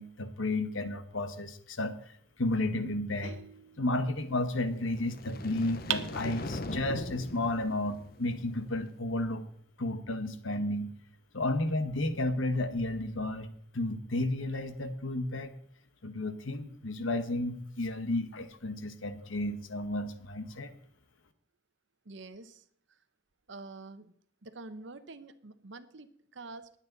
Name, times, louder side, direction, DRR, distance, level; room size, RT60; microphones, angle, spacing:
voice 1, 0.0-3.4 3.8-9.4 9.8-10.9 11.3-15.5 16.0-20.7, left 2 dB, 85° left, 9 dB, 1.4 m, -32 dB
sound 1, 3.2-4.4 5.9-6.9, right 10 dB, 90° right, 0.9 m, -39 dB
sound 2, 4.6-8.8, left 2 dB, 50° left, 0.9 m, -41 dB
voice 2, 22.0-23.0 23.5-24.1 24.4-26.7, right 3 dB, 65° right, 11 dB, 1.0 m, -47 dB
20.0 x 8.9 x 4.1 m, 0.64 s
head